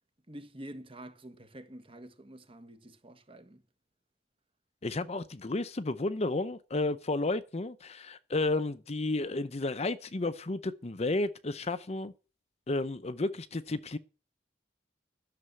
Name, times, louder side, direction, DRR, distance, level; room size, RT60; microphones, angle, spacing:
voice 1, 0.3-3.6, right 1 dB, 30° right, 1.5 m, -48 dB
voice 2, 4.8-12.1 12.7-14.0, left 2 dB, 35° left, 0.7 m, -32 dB
11.0 x 6.8 x 7.6 m
head